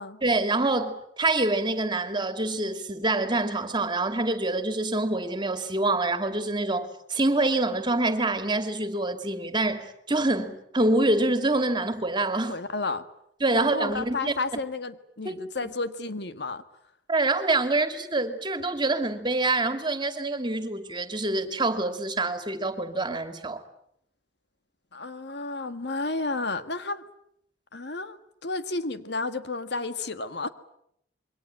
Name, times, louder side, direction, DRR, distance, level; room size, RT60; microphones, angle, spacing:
voice 1, 0.2-12.6 13.4-14.3 15.2-15.4 17.1-23.6, right 2 dB, 25° right, 2.6 m, -26 dB
voice 2, 12.5-13.0 13.5-16.6 24.9-27.0 27.7-28.2 28.4-30.5, left 3 dB, 65° left, 1.7 m, -32 dB
27.5 x 23.5 x 9.0 m
head